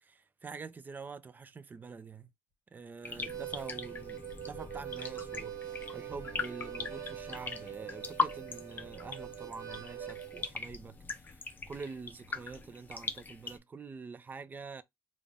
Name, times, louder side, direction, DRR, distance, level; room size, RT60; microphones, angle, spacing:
voice 1, 0.0-2.3 2.7-11.3 11.7-14.8, right 5 dB, 25° right, 0.5 m, -46 dB
sound 1, 3.0-13.6, left 4 dB, 25° left, 0.7 m, -40 dB
Harmonica, 3.1-10.5, right 10 dB, 45° right, 1.4 m, -44 dB
3.9 x 2.5 x 3.4 m
cardioid pair, 120°, 7 cm